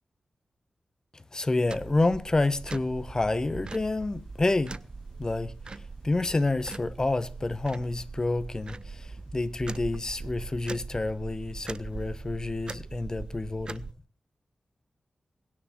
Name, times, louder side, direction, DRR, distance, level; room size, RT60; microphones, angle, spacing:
voice 1, 1.1-4.8 5.2-13.9, left 2 dB, 30° left, 1.5 m, -29 dB
sound 1, 1.7-13.9, right 4 dB, 45° right, 0.7 m, -41 dB
22.5 x 10.0 x 4.5 m
cardioid pair, 65°, 2 cm